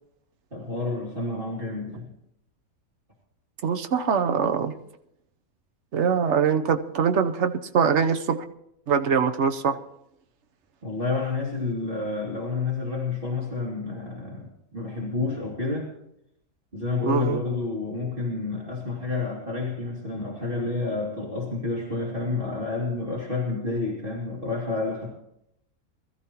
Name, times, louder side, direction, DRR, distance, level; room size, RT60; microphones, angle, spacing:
voice 1, 0.5-2.1 10.8-15.9 16.7-25.1, left 3 dB, 35° right, -4 dB, 2.9 m, -29 dB
voice 2, 3.6-4.7 5.9-8.4 8.9-9.8 17.0-17.4, right 6 dB, 55° right, 8 dB, 1.0 m, -23 dB
22.5 x 14.0 x 2.9 m, 0.78 s
omnidirectional pair, 1.6 m